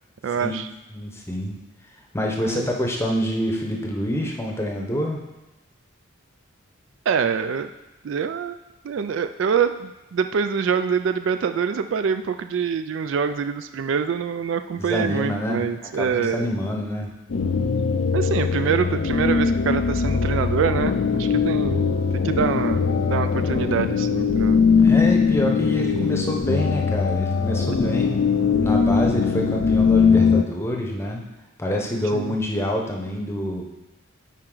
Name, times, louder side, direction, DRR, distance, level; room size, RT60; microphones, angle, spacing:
voice 1, 0.2-0.7 2.4-2.7 7.1-7.7 8.0-8.6 8.8-16.5 18.1-21.8 22.2-24.6 26.0-26.1 27.7-28.0 32.1-32.4, right 6 dB, 65° right, 9 dB, 0.3 m, -25 dB
voice 2, 0.9-1.6 2.1-5.2 14.7-15.6 15.9-17.1 24.8-28.2 28.6-31.2 31.6-33.7, equal, 10° left, 0 dB, 0.8 m, -26 dB
sound 1, 17.3-30.4, left 5 dB, 65° left, 0.4 m, -21 dB
9.1 x 4.3 x 3.8 m, 1.0 s
head